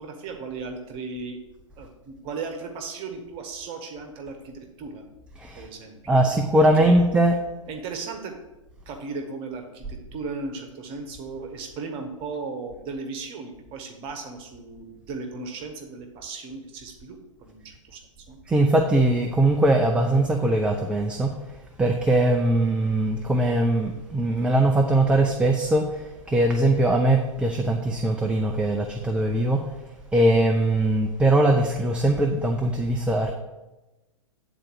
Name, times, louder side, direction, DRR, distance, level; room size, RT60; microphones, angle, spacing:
voice 1, 0.0-1.4 1.8-5.0 5.5-6.3 6.7-7.0 7.7-8.3 8.9-18.0 18.3-18.4, right 4 dB, 35° right, 4 dB, 1.2 m, -36 dB
voice 2, 6.1-7.3 18.5-21.3 21.8-29.6 30.1-33.3, right 1 dB, 5° right, 4 dB, 0.5 m, -21 dB
8.8 x 4.1 x 6.2 m, 1.1 s
figure-of-eight pair, 105°, 16 cm